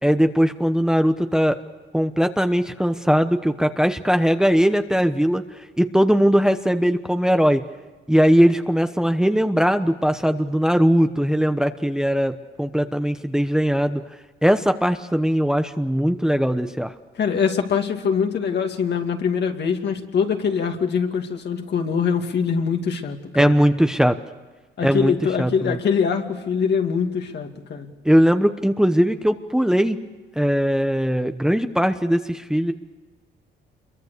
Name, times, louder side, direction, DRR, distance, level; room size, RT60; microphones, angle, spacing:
voice 1, 0.0-1.6 1.9-7.6 8.1-14.0 14.4-16.9 23.3-24.2 24.8-25.8 28.0-30.0 30.4-32.7, equal, 5° right, 8 dB, 1.0 m, -20 dB
voice 2, 17.1-23.6 24.8-27.9, left 6 dB, 60° left, 4 dB, 2.6 m, -23 dB
27.5 x 23.0 x 6.8 m, 1.3 s
cardioid pair, 90°, 20 cm